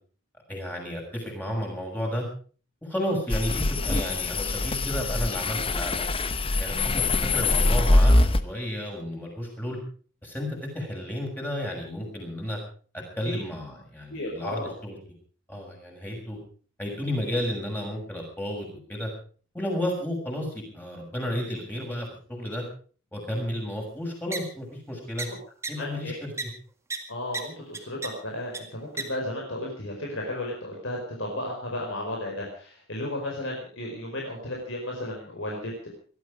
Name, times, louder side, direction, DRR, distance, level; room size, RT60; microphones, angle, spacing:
voice 1, 0.5-2.2 2.8-6.1 6.6-9.8 10.2-12.6 13.2-15.0 15.5-16.4 16.8-19.1 19.5-22.6 23.1-25.3 25.7-26.5, equal, 10° left, 0 dB, 6.6 m, -32 dB
sound 1, 3.3-8.4, left 2 dB, 25° left, 0.9 m, -23 dB
voice 2, 14.1-14.7 25.2-25.4 25.8-26.2 27.1-35.9, left 1 dB, 60° left, -1 dB, 4.8 m, -34 dB
sound 2, 24.3-24.4 25.2-25.3 25.6-25.7 26.4-26.5 26.9-27.0 27.3-27.4 27.7-28.1 28.5-28.6 29.0-29.1, right 4 dB, 15° right, 2.0 m, -30 dB
20.5 x 13.5 x 5.0 m, 0.41 s
head